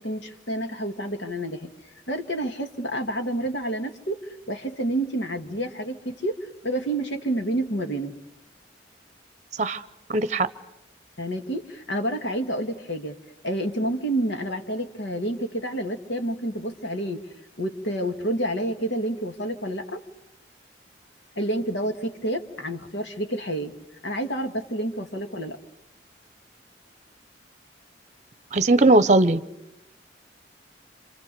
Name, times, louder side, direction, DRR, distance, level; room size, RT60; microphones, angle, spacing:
voice 1, 0.0-1.7 2.1-8.1 11.2-13.2 13.4-17.2 17.6-20.0 21.4-23.7 24.0-25.6, right 1 dB, 70° left, 6 dB, 2.1 m, -29 dB
voice 2, 10.1-10.5 28.5-29.4, right 2 dB, 40° right, 14 dB, 0.9 m, -18 dB
28.0 x 27.5 x 6.9 m, 0.91 s
head